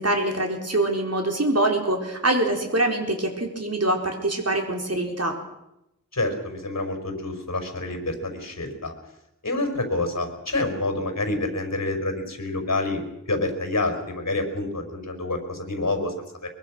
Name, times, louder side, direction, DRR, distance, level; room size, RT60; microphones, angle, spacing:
voice 1, 0.0-5.4, right 1 dB, 50° right, 2 dB, 4.6 m, -24 dB
voice 2, 6.1-8.9 9.4-13.0 13.3-16.1, left 2 dB, 55° left, 6 dB, 5.4 m, -27 dB
23.0 x 22.5 x 6.4 m, 0.87 s
wide cardioid pair, 55°, 32 cm